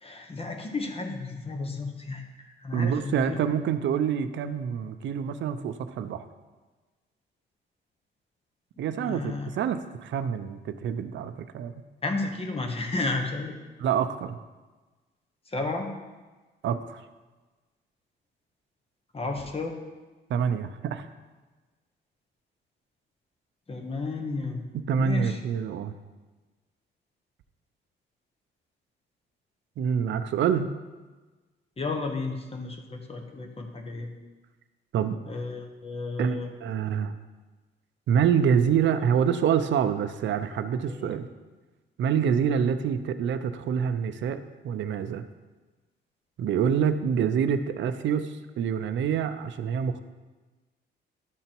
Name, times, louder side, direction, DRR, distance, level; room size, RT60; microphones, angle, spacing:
voice 1, 0.0-3.4 9.0-9.5 12.0-13.6 15.5-15.9 19.1-19.8 23.7-24.6 25.0-25.4 31.8-34.1 35.3-36.5 40.9-41.2, left 3 dB, 30° left, 4 dB, 1.2 m, -32 dB
voice 2, 2.7-6.2 8.8-11.7 13.8-14.4 16.6-17.0 20.3-21.0 24.7-25.9 29.8-30.7 34.9-35.2 36.2-36.4 36.6-37.2 38.1-41.3 42.0-45.2 46.4-50.0, right 7 dB, 70° right, 10 dB, 0.6 m, -26 dB
11.5 x 3.8 x 4.5 m, 1.3 s
cardioid pair, 90°, 20 cm